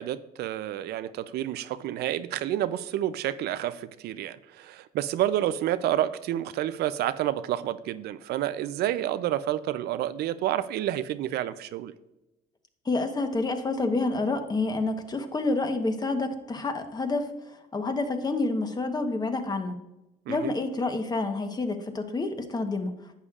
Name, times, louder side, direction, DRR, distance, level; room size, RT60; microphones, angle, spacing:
voice 1, 0.0-11.9 20.3-20.5, right 12 dB, 75° right, 14 dB, 0.5 m, -29 dB
voice 2, 12.8-17.3 17.7-19.8 20.3-22.9, left 3 dB, 25° left, 7 dB, 1.0 m, -28 dB
11.0 x 8.2 x 2.4 m, 0.94 s
cardioid pair, 110°, 17 cm